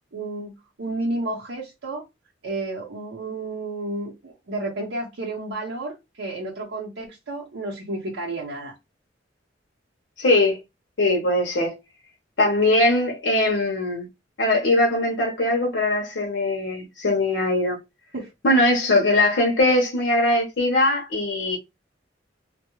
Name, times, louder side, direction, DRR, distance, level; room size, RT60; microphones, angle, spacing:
voice 1, 0.1-2.0 2.4-8.7 18.1-18.3, right 2 dB, 80° right, 0.7 m, -31 dB
voice 2, 10.2-10.6 11.0-11.8 12.4-14.1 14.4-17.8 18.4-21.6, left 2 dB, 75° left, 0.7 m, -21 dB
2.2 x 2.1 x 2.9 m
head